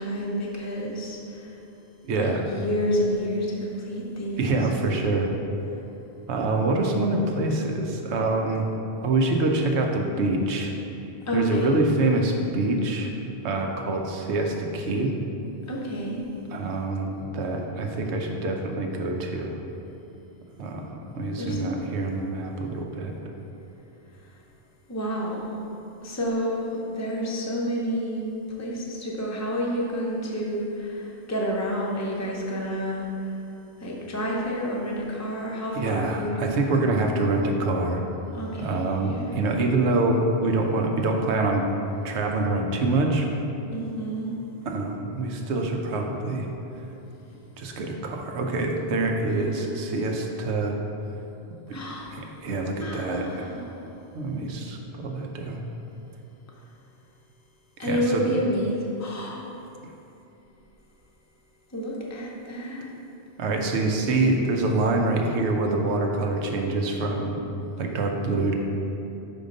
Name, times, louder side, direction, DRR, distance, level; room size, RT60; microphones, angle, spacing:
voice 1, 0.0-1.6 2.1-4.5 11.2-11.8 15.7-16.2 21.3-22.3 24.9-25.6 26.0-33.1 33.8-36.5 38.3-39.3 43.7-44.3 49.2-49.8 51.7-52.2 52.8-53.7 57.8-59.4 61.7-62.9, equal, 15° left, -3 dB, 0.7 m, -29 dB
voice 2, 2.0-2.4 4.4-5.3 6.3-8.7 9.0-10.7 11.3-13.1 13.4-15.1 16.5-19.5 20.6-23.1 35.7-38.0 38.6-41.6 42.0-43.3 44.7-46.5 47.6-50.8 51.7-51.8 52.1-53.6 54.1-55.6 57.8-58.3 63.4-67.4 67.8-68.5, right 2 dB, 80° right, 2 dB, 1.0 m, -25 dB
5.3 x 4.3 x 5.1 m, 2.9 s
omnidirectional pair, 1.1 m